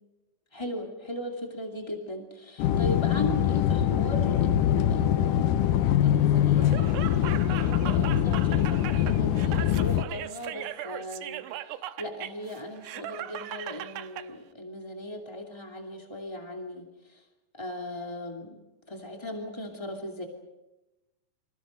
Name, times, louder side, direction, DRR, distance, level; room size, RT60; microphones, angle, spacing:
voice 1, 0.5-17.2 17.5-18.6 18.9-20.2, left 1 dB, 15° left, 1 dB, 1.1 m, -38 dB
sound 1, 2.6-10.0, left 10 dB, 85° left, 1.9 m, -23 dB
Laughter, 6.6-14.3, right 13 dB, 75° right, 3.1 m, -38 dB
30.0 x 27.0 x 5.3 m, 1.0 s
omnidirectional pair, 5.1 m